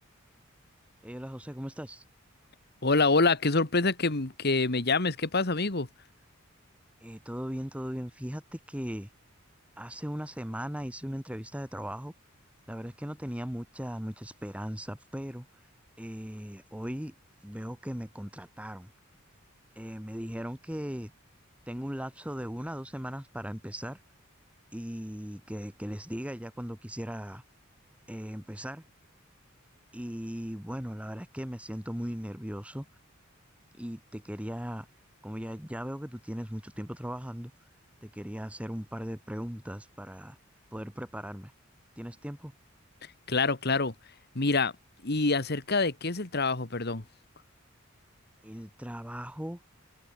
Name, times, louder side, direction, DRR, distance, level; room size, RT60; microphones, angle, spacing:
voice 1, 1.0-2.0 7.0-9.1 9.8-12.1 12.7-15.4 16.0-17.1 17.4-18.9 19.7-21.1 21.7-24.0 24.7-27.4 28.1-28.8 29.9-32.9 33.8-34.9 35.2-37.5 38.0-40.4 40.7-41.5 42.0-42.5 48.4-49.6, equal, 5° right, 1.7 m, -38 dB
voice 2, 2.8-5.9 43.3-43.9 44.4-44.7 45.0-47.0, left 3 dB, 50° left, 1.8 m, -26 dB
head